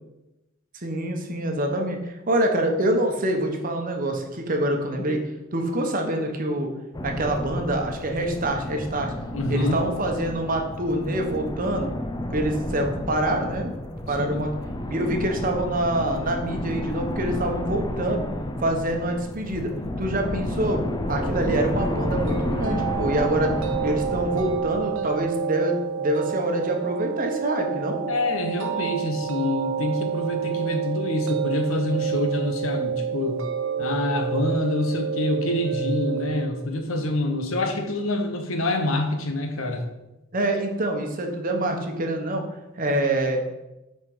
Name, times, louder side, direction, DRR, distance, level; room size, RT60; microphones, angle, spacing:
voice 1, 0.7-5.2 5.5-6.7 7.0-9.1 9.5-11.9 12.3-13.7 14.1-14.5 14.9-18.2 18.6-19.7 20.0-20.8 21.1-23.5 23.8-28.0 40.3-42.4 42.8-43.4, right 1 dB, 45° right, 3 dB, 1.0 m, -25 dB
sound 1, 6.9-25.4, left 1 dB, 20° left, 0.5 m, -31 dB
voice 2, 9.3-9.8 14.2-14.5 28.1-33.4 33.8-39.9, left 1 dB, 80° left, 4 dB, 1.0 m, -26 dB
sound 2, 21.1-36.5, right 8 dB, 80° right, 0.6 m, -29 dB
5.7 x 4.5 x 5.4 m, 0.98 s
head